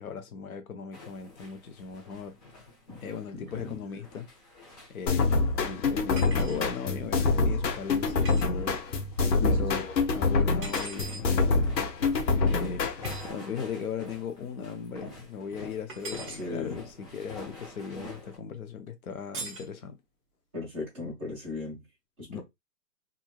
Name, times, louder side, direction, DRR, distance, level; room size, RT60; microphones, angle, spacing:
voice 1, 0.0-2.4 3.0-4.3 4.9-5.3 5.5-8.8 9.5-11.6 12.4-12.9 13.2-20.0 22.3-22.4, left 6 dB, 60° left, 0.7 m, -38 dB
sound 1, 0.9-18.4, left 2 dB, 25° left, 0.9 m, -48 dB
sound 2, 5.1-13.3, left 3 dB, 90° left, 1.0 m, -26 dB
sound 3, 6.1-6.6 8.2-8.5 10.6-11.3 13.0-13.3 15.9-16.4 19.3-19.7, right 3 dB, 35° right, 1.1 m, -40 dB
voice 2, 16.4-16.7 20.5-21.8 22.2-22.4, left 4 dB, 10° right, 0.6 m, -35 dB
3.0 x 2.6 x 2.2 m
hypercardioid pair, 160°, 49 cm